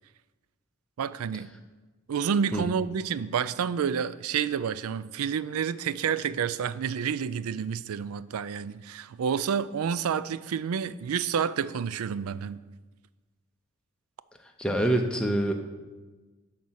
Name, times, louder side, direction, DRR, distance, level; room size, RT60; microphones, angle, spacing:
voice 1, 1.0-1.5 2.1-12.6, right 7 dB, 90° right, 0.4 m, -29 dB
voice 2, 14.6-15.5, right 1 dB, 5° left, 0.6 m, -25 dB
11.0 x 4.2 x 6.4 m
head